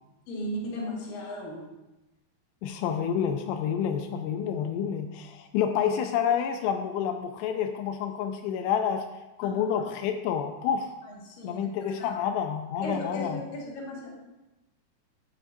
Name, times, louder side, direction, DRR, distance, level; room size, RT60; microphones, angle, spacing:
voice 1, 0.3-1.7 9.4-9.8 11.1-11.6 12.0-12.2 12.8-14.1, left 1 dB, 60° left, -4 dB, 3.3 m, -36 dB
voice 2, 2.6-9.1 9.4-11.0 11.4-13.4, left 8 dB, 85° left, 5 dB, 2.7 m, -28 dB
11.0 x 7.3 x 2.6 m, 1.0 s
omnidirectional pair, 4.8 m